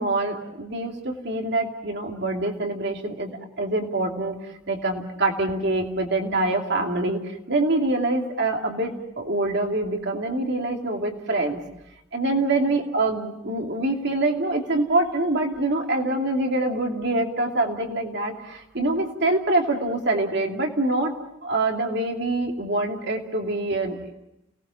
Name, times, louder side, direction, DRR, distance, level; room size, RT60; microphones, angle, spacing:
voice 1, 0.0-11.6 12.1-21.1 21.4-24.1, right 2 dB, 55° right, 3 dB, 2.7 m, -25 dB
29.5 x 19.0 x 7.2 m, 0.87 s
head